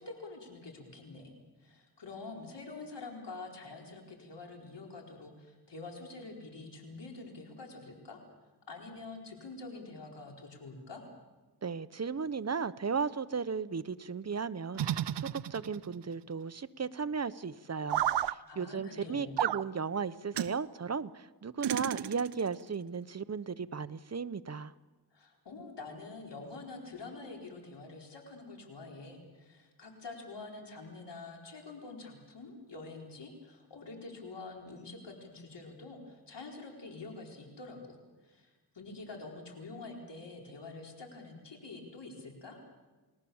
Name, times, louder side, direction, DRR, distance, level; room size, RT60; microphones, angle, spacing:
voice 1, 0.0-8.2 8.7-11.0 18.5-19.3 25.1-42.6, left 3 dB, 80° left, 1 dB, 4.6 m, -46 dB
voice 2, 11.6-24.7, right 5 dB, 40° right, 15 dB, 0.8 m, -36 dB
sound 1, 14.8-16.0 17.9-18.3 19.4-19.6 20.3-20.6 21.6-22.5, right 11 dB, 80° right, 0.7 m, -32 dB
29.5 x 20.0 x 7.1 m, 1.3 s
wide cardioid pair, 80°, 41 cm